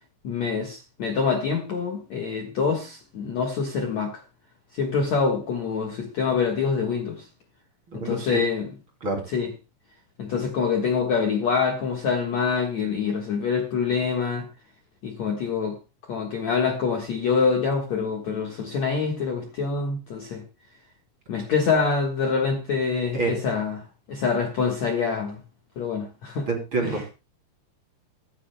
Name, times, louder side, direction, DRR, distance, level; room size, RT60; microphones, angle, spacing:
voice 1, 0.2-4.2 4.7-7.3 7.9-8.7 9.3-9.5 10.2-14.5 15.0-15.8 16.0-20.4 21.3-25.4 25.8-26.5 26.8-27.0, left 5 dB, 55° left, 2.1 m, -25 dB
voice 2, 7.9-8.4 9.0-9.2 23.1-23.3 26.5-27.1, right 3 dB, 35° right, 3.1 m, -27 dB
24.5 x 9.9 x 2.2 m
omnidirectional pair, 4.9 m